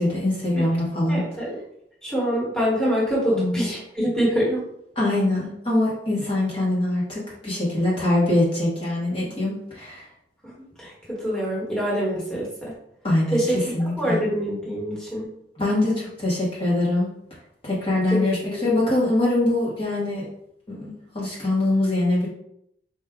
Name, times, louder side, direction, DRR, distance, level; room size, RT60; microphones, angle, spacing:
voice 1, 0.0-1.2 3.3-3.6 5.0-10.0 13.0-13.4 13.7-14.2 15.6-17.1 17.6-20.3 20.7-22.3, left 1 dB, 30° left, -6 dB, 1.1 m, -23 dB
voice 2, 1.1-1.5 2.0-4.6 10.4-10.5 10.8-12.7 13.3-15.3 18.1-18.8, equal, 5° left, -7 dB, 1.2 m, -25 dB
4.4 x 2.4 x 3.6 m, 0.75 s
head